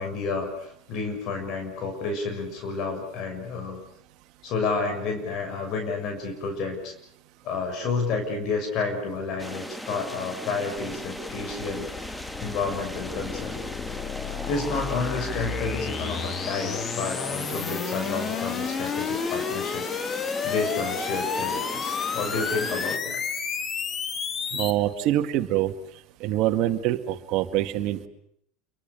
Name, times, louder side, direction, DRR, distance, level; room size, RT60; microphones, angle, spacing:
voice 1, 0.0-3.8 4.4-6.9 7.4-13.6 14.5-19.9 20.4-23.2, left 4 dB, 50° left, 5 dB, 6.8 m, -30 dB
sound 1, 9.4-23.0, left 1 dB, 5° left, 1.5 m, -37 dB
sound 2, 10.8-24.7, left 6 dB, 35° left, 2.2 m, -31 dB
voice 2, 24.5-25.7 26.2-28.1, right 13 dB, 55° right, 6 dB, 2.2 m, -25 dB
28.5 x 23.5 x 7.0 m, 0.73 s
hypercardioid pair, 90°, 0 cm